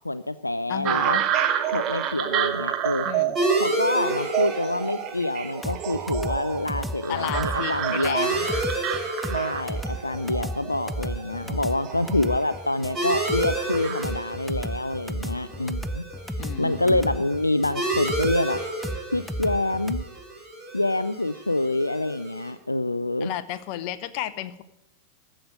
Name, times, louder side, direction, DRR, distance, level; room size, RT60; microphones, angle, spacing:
voice 1, 0.0-1.2 1.7-3.1 3.6-8.3 9.3-16.0 16.6-18.6 19.1-20.1 20.7-23.3, left 2 dB, 85° left, 13 dB, 0.3 m, -26 dB
voice 2, 0.7-1.2 3.0-3.4 7.1-8.5 16.4-17.2 23.2-24.6, left 12 dB, 45° left, 13 dB, 0.7 m, -33 dB
sound 1, 0.8-14.0, right 11 dB, 35° right, 1.0 m, -29 dB
sound 2, 3.3-22.5, right 2 dB, 20° right, 3.9 m, -32 dB
sound 3, 5.6-20.0, equal, 5° left, 0.4 m, -33 dB
14.5 x 5.1 x 9.1 m, 0.85 s
figure-of-eight pair, 90°, 0 cm